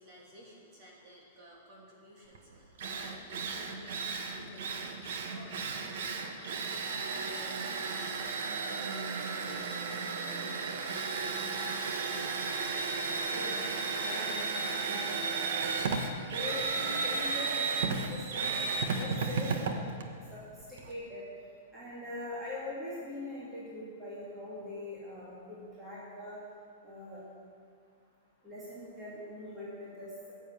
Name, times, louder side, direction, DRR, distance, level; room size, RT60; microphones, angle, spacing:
voice 1, 0.0-6.0 6.3-10.0, equal, 25° right, -3 dB, 2.9 m, -54 dB
Drill, 2.3-2.4 2.8-20.9, right 4 dB, 55° right, 1.3 m, -34 dB
voice 2, 13.2-13.6 13.9-14.4 14.7-15.2 16.3-17.7 18.1-18.5 18.9-19.8 20.3-20.4 20.7-21.2 21.7-26.4 26.8-27.2 28.4-30.3, left 1 dB, 10° right, -9 dB, 2.3 m, -42 dB
14.5 x 7.4 x 8.9 m, 2.2 s
supercardioid pair, 175°, 0 cm